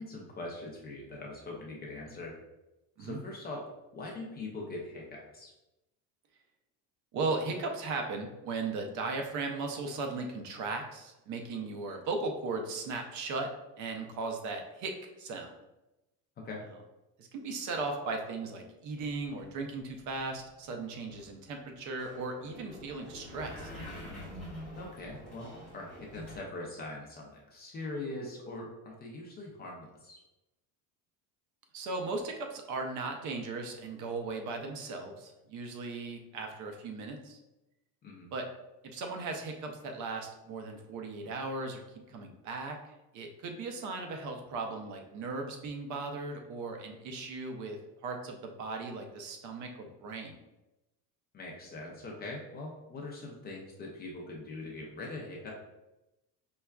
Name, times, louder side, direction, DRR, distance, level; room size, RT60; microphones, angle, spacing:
voice 1, 0.0-2.4 3.0-3.7 3.9-5.5 16.4-16.6 24.8-30.2 38.0-38.3 51.3-55.5, left 2 dB, 25° left, -1 dB, 0.4 m, -42 dB
voice 2, 7.1-13.5 13.8-14.9 15.2-15.5 17.2-23.7 31.7-37.4 38.3-38.4 38.9-41.8 42.1-42.8 43.1-47.8 48.0-50.4, right 3 dB, 45° right, 4 dB, 0.5 m, -37 dB
sound 1, 19.0-26.4, left 1 dB, ahead, 1.0 m, -47 dB
5.3 x 2.3 x 2.2 m, 0.97 s
cardioid pair, 150°, 41 cm